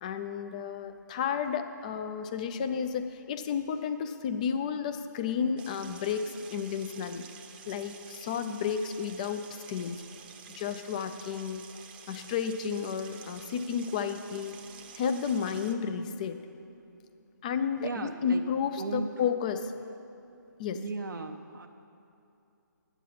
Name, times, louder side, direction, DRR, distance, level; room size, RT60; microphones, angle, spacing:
voice 1, 0.0-7.2 7.7-10.0 10.5-11.6 12.1-14.6 14.9-16.4 17.4-19.7 20.6-20.8, left 7 dB, 25° left, 9 dB, 0.4 m, -32 dB
sound 1, 5.6-15.7, right 7 dB, 30° right, 0.7 m, -50 dB
voice 2, 17.8-18.5 18.8-19.1 20.7-21.7, right 4 dB, 80° right, 4 dB, 0.5 m, -36 dB
10.0 x 8.3 x 5.7 m, 2.7 s
figure-of-eight pair, 150°, 11 cm